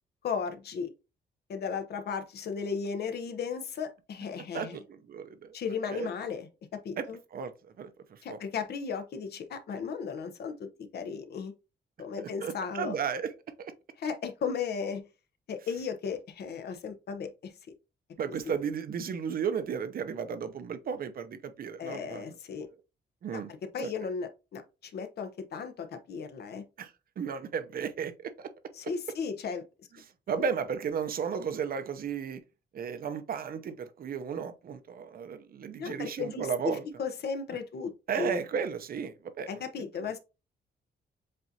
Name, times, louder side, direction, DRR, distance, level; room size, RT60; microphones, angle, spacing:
voice 1, 0.2-0.9 1.5-4.8 5.5-7.2 8.2-11.5 12.0-13.0 14.0-15.0 15.5-17.5 18.5-18.6 21.8-22.7 23.3-26.6 28.7-29.6 30.4-30.5 35.8-37.9 38.2-38.4 39.5-40.2, left 6 dB, 70° left, 0.8 m, -35 dB
voice 2, 4.5-5.5 5.9-6.1 7.0-7.5 7.8-8.4 12.2-13.3 13.6-13.7 18.2-22.2 23.2-23.5 23.8-23.9 26.8-28.5 30.3-32.4 32.7-36.8 38.1-39.6 40.0-40.2, right 7 dB, 55° right, 0.7 m, -34 dB
7.4 x 2.6 x 2.7 m
cardioid pair, 115°, 18 cm